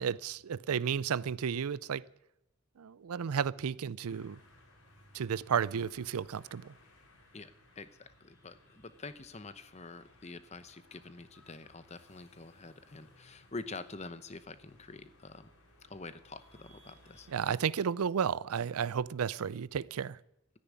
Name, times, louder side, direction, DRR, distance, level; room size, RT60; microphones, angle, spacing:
voice 1, 0.0-2.0 2.8-4.4 5.1-6.7 17.3-20.2, right 7 dB, 80° right, 0.4 m, -33 dB
sound 1, 4.0-17.5, left 1 dB, 85° left, 4.4 m, -62 dB
voice 2, 7.8-15.5 15.9-17.3, left 3 dB, 30° left, 0.9 m, -46 dB
13.5 x 9.8 x 9.7 m
head